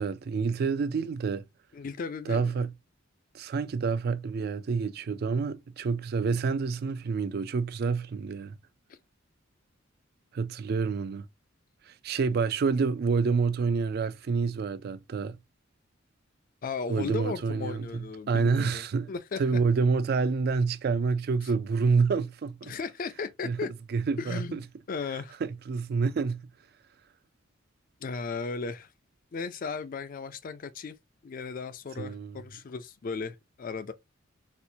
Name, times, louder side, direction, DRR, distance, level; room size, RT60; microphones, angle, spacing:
voice 1, 0.0-1.4 2.3-2.7 3.3-8.5 10.3-11.3 11.9-15.4 16.9-22.7 23.4-23.6 23.9-24.6 25.4-26.4 32.0-32.4, right 5 dB, 50° right, 0.3 m, -28 dB
voice 2, 1.7-2.5 8.9-9.0 16.6-19.4 22.6-23.7 24.2-24.6 24.9-25.4 28.0-28.9 29.3-31.0 31.2-33.9, left 4 dB, 45° left, 0.4 m, -36 dB
4.3 x 2.1 x 2.6 m
head